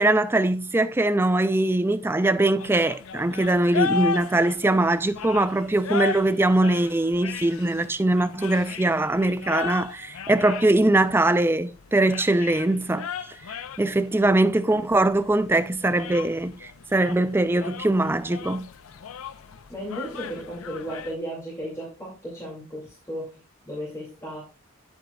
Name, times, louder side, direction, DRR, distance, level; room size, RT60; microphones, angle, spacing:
voice 1, 0.0-13.3 13.8-18.7, right 2 dB, 10° right, 0.3 m, -22 dB
sound 1, 2.6-21.1, left 6 dB, 85° left, 0.5 m, -36 dB
voice 2, 19.7-24.4, equal, 15° left, 2.2 m, -35 dB
9.0 x 8.0 x 2.3 m
head